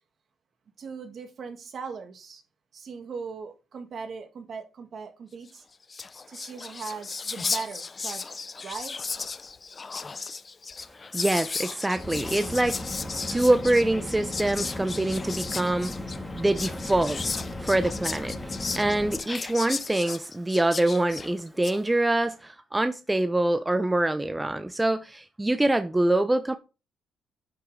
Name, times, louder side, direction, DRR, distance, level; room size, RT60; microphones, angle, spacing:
voice 1, 0.8-2.4 2.7-5.6 6.3-8.4 8.6-8.9, right 5 dB, 55° right, 1.9 m, -39 dB
Whispering, 5.6-5.7 5.8-21.8, left 4 dB, 35° left, 0.6 m, -35 dB
voice 2, 11.1-13.0 13.3-15.9 16.4-26.5, right 1 dB, 10° right, 0.7 m, -25 dB
sound 1, 11.9-19.2, left 1 dB, 10° left, 2.1 m, -36 dB
9.5 x 5.9 x 3.8 m
cardioid pair, 90°, 0 cm